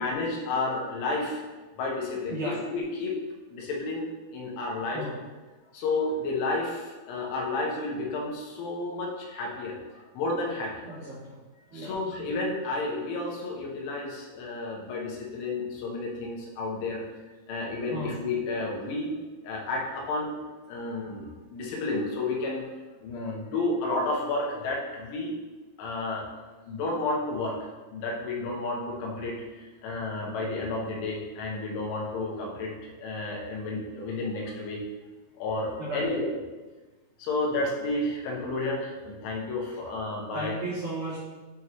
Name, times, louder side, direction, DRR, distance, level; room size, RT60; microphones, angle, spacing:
voice 1, 0.0-1.4 1.8-3.2 3.5-5.1 5.7-10.8 11.7-17.0 17.5-20.4 20.7-22.7 23.0-25.4 25.8-26.3 26.7-27.6 27.9-34.8 35.4-36.3 37.2-40.6, left 2 dB, 75° left, -2 dB, 3.2 m, -31 dB
voice 2, 10.8-11.4 11.7-11.9 17.9-18.1 35.8-36.1 40.3-41.2, right 1 dB, 70° right, -12 dB, 1.8 m, -34 dB
9.3 x 3.6 x 2.9 m, 1.3 s
omnidirectional pair, 5.8 m